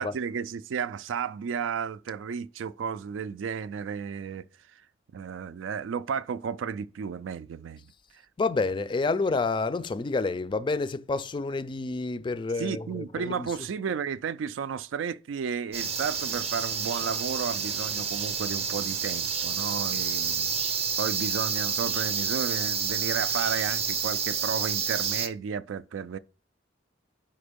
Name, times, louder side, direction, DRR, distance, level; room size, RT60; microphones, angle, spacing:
voice 1, 0.0-4.5 5.1-7.8 12.6-20.5 21.0-26.2, right 6 dB, 80° right, 0.3 m, -33 dB
voice 2, 8.4-13.5, left 3 dB, 25° left, 0.3 m, -29 dB
sound 1, 15.7-25.3, right 6 dB, 30° right, 0.6 m, -29 dB
5.1 x 4.3 x 5.1 m
head